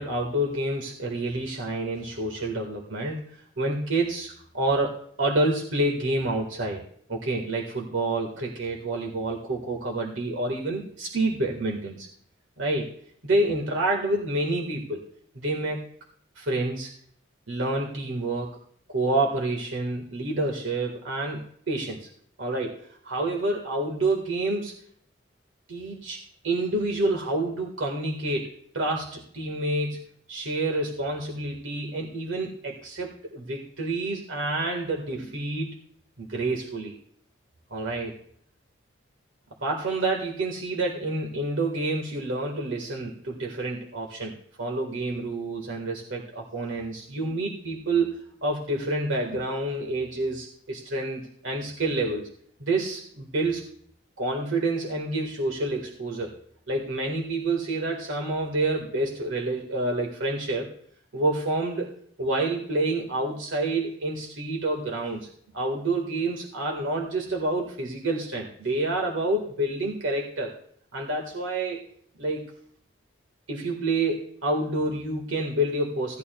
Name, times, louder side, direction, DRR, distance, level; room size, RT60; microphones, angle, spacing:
voice 1, 0.0-3.2 3.6-6.8 7.1-12.1 12.6-12.9 13.2-15.0 15.3-15.8 16.3-16.9 17.5-18.6 18.9-22.1 22.4-24.7 25.7-30.0 30.3-35.7 36.2-36.9 37.7-38.1 39.6-52.3 52.6-53.6 54.2-56.3 56.7-60.7 61.1-61.9 62.2-65.3 65.5-70.6 70.9-71.9 72.2-72.4 73.5-76.2, right 2 dB, 90° right, 0 dB, 1.6 m, -28 dB
16.5 x 11.0 x 2.3 m, 0.63 s
head